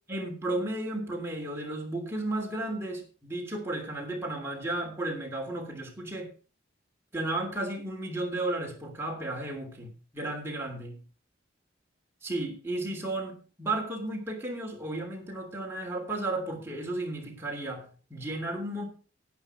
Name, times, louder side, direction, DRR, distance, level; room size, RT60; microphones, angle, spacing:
voice 1, 0.1-6.3 7.1-10.9 12.2-18.8, right 2 dB, 15° right, -1 dB, 3.1 m, -34 dB
11.5 x 9.2 x 4.9 m, 0.36 s
head